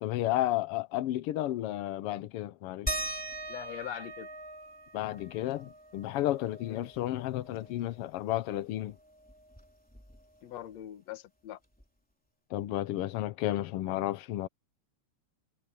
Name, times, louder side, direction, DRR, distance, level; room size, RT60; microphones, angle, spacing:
voice 1, 0.0-3.0 4.9-9.0 12.5-14.5, left 14 dB, 80° left, 1.3 m, -32 dB
sound 1, 2.9-8.0 8.3-8.4 8.8-10.5 11.8-11.9 12.6-12.7, right 1 dB, 5° left, 2.9 m, -41 dB
voice 2, 3.5-4.3 6.7-6.9 10.4-11.6, left 12 dB, 65° left, 2.4 m, -42 dB
omnidirectional pair, 3.5 m